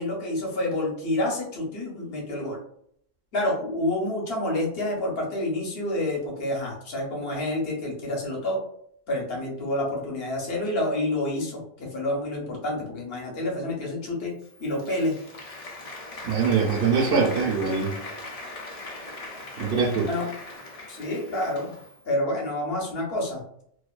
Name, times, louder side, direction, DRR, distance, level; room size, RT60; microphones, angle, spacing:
voice 1, 0.0-2.6 3.3-8.6 9.1-14.3 14.6-15.1 20.0-20.3 20.9-21.7 22.1-23.4, left 1 dB, 70° left, -2 dB, 1.0 m, -28 dB
Applause, 14.4-22.0, left 2 dB, 50° left, 0.5 m, -40 dB
voice 2, 16.2-18.0 19.6-20.1, right 5 dB, 75° right, -3 dB, 0.8 m, -23 dB
2.4 x 2.1 x 2.3 m, 0.68 s
omnidirectional pair, 1.0 m